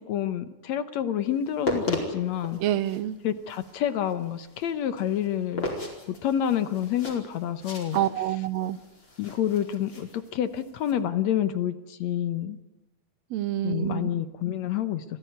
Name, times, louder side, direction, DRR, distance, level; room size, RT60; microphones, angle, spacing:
voice 1, 0.1-2.6 3.2-5.7 6.1-8.0 9.2-12.6 13.6-15.0, left 10 dB, 70° left, 12 dB, 2.1 m, -28 dB
sound 1, 1.4-10.9, left 1 dB, 35° left, 5.3 m, -36 dB
voice 2, 2.6-3.2 7.9-8.8 13.3-14.1, right 12 dB, 70° right, 16 dB, 1.9 m, -27 dB
26.0 x 15.5 x 9.4 m, 0.99 s
omnidirectional pair, 3.6 m